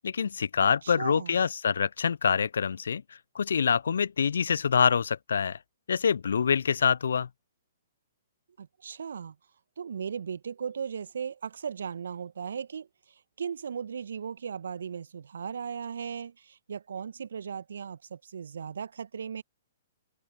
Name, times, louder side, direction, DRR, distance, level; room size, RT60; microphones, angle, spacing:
voice 1, 0.0-3.0 3.3-5.6 5.9-7.3, left 6 dB, 65° left, 0.7 m, -25 dB
voice 2, 0.6-1.5 8.6-9.4 9.8-19.4, right 7 dB, 65° right, 1.6 m, -37 dB
figure-of-eight pair, 120°, 0 cm